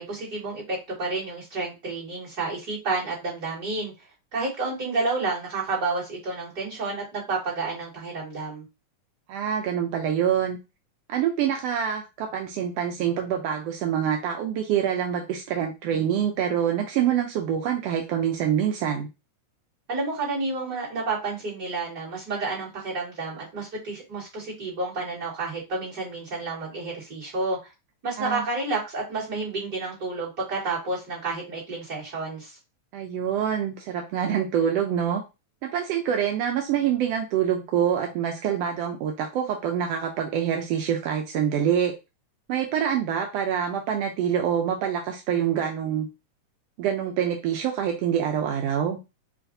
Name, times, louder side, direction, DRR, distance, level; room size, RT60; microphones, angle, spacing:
voice 1, 0.0-3.9 4.3-8.6 19.9-27.6 28.0-32.6, right 3 dB, 30° right, 3.1 m, -30 dB
voice 2, 9.3-10.6 11.1-19.1 28.2-28.4 32.9-35.2 35.6-41.9 42.5-46.1 46.8-49.0, right 9 dB, 75° right, 1.4 m, -26 dB
5.8 x 3.2 x 2.6 m
omnidirectional pair, 3.4 m